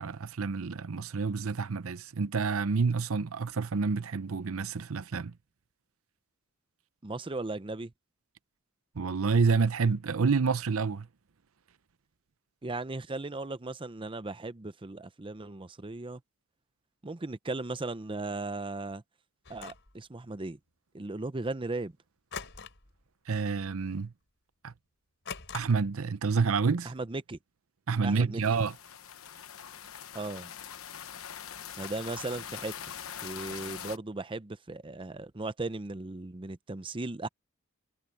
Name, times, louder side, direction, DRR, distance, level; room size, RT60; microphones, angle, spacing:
voice 1, 0.0-5.3 9.0-11.1 23.3-24.1 24.6-24.7 25.5-26.9 27.9-28.7, right 5 dB, 70° right, 0.7 m, -28 dB
voice 2, 7.0-7.9 12.6-16.2 17.0-19.0 19.5-20.6 20.9-21.9 26.9-27.4 28.0-28.4 30.1-30.5 31.7-32.7 33.2-37.3, right 2 dB, 25° right, 0.7 m, -37 dB
sound 1, 19.4-19.9 22.3-23.0 23.3-23.6 24.0-24.1 25.2-26.0, left 6 dB, 60° left, 4.6 m, -43 dB
sound 2, 28.4-34.0, left 9 dB, 75° left, 1.0 m, -43 dB
head